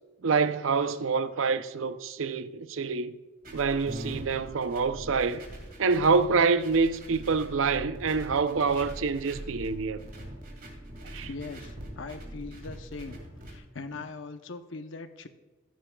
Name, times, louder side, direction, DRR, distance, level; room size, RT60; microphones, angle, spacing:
voice 1, 0.2-3.2 3.5-5.4 5.8-10.0 11.1-11.3, right 4 dB, 80° right, 0.6 m, -26 dB
sound 1, 3.4-13.6, right 1 dB, 45° right, 2.2 m, -42 dB
voice 2, 11.2-13.2 13.4-15.3, left 3 dB, 70° left, 0.8 m, -40 dB
15.0 x 10.5 x 2.3 m
head